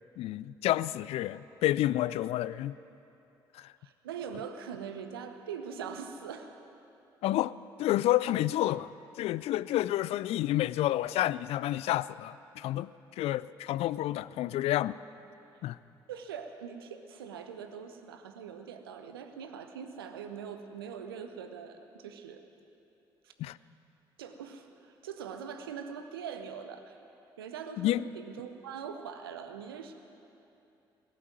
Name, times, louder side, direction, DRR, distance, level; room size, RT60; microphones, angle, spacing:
voice 1, 0.2-2.7 3.5-3.7 7.2-8.9 9.2-15.0 15.6-15.8 23.4-23.6 27.8-28.1, left 14 dB, 55° left, 18 dB, 0.4 m, -29 dB
voice 2, 3.8-6.5 16.1-22.4 23.2-23.3 24.2-27.0 27.4-29.9, right 7 dB, 80° right, 7 dB, 0.8 m, -42 dB
18.0 x 7.7 x 9.2 m, 2.8 s
figure-of-eight pair, 45°, 12 cm